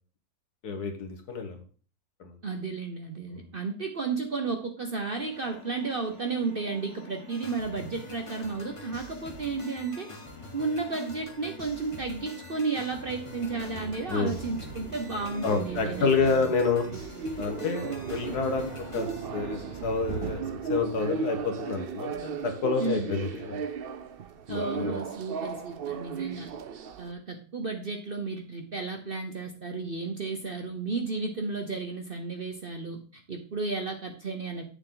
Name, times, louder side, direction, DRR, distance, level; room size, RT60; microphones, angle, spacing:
voice 1, 0.6-1.6 2.2-2.3 3.3-3.4 14.1-14.4 15.4-16.9 17.4-20.4 20.7-23.6 24.5-25.0 26.3-26.4, left 4 dB, 70° left, 6 dB, 1.8 m, -29 dB
voice 2, 2.4-10.1 10.5-16.5 22.8-23.1 24.5-26.5 27.0-34.6, right 4 dB, 45° right, 4 dB, 0.8 m, -33 dB
sound 1, 5.2-20.4, left 3 dB, 45° left, 2.3 m, -48 dB
sound 2, 7.3-19.2, left 2 dB, 20° left, 1.3 m, -47 dB
sound 3, 13.0-27.1, right 6 dB, 80° right, 0.5 m, -37 dB
8.8 x 6.8 x 3.8 m, 0.41 s
omnidirectional pair, 1.8 m